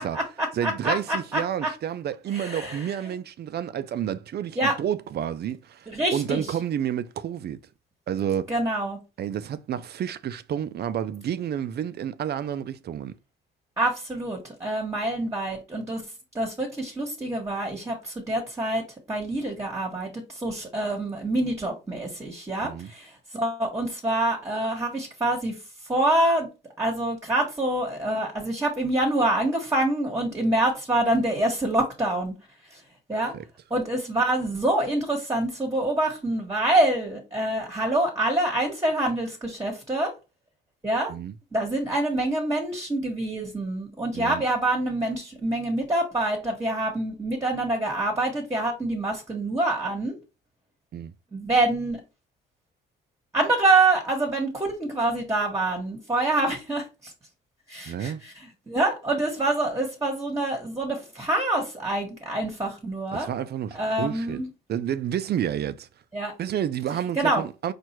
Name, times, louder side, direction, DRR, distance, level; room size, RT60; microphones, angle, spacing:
voice 1, 0.0-1.7 2.3-3.1 4.5-4.8 5.9-6.5 8.5-9.0 13.8-16.0 16.3-18.8 19.1-25.6 25.9-26.5 26.8-32.3 32.7-32.8 33.1-33.3 33.7-40.1 40.8-41.2 41.5-50.1 51.3-52.0 53.3-57.1 57.7-63.3 63.7-64.5 66.1-66.3 67.2-67.4, right 2 dB, 15° right, 1.4 m, -26 dB
voice 2, 0.5-7.6 8.1-8.5 9.2-13.1 22.6-22.9 33.1-33.4 41.1-41.3 44.1-44.4 50.9-51.1 57.9-58.2 63.1-64.4 64.7-65.9 66.4-67.7, right 9 dB, 55° right, 0.5 m, -30 dB
4.5 x 2.5 x 4.4 m
cardioid pair, 90°, 20 cm